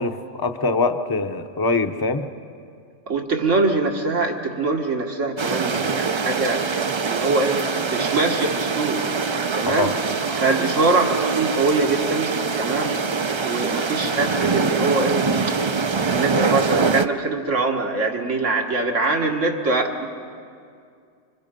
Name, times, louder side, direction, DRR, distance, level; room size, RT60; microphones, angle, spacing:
voice 1, 0.0-2.3 9.6-9.9, left 3 dB, 20° left, 8 dB, 0.8 m, -23 dB
voice 2, 3.1-9.0 9.5-9.9 10.3-12.3 12.6-15.6 16.1-20.1, right 3 dB, 85° right, 1 dB, 2.2 m, -23 dB
sound 1, 5.4-17.1, right 4 dB, 40° right, 0.4 m, -24 dB
28.5 x 25.5 x 5.3 m, 2.3 s
omnidirectional pair, 1.3 m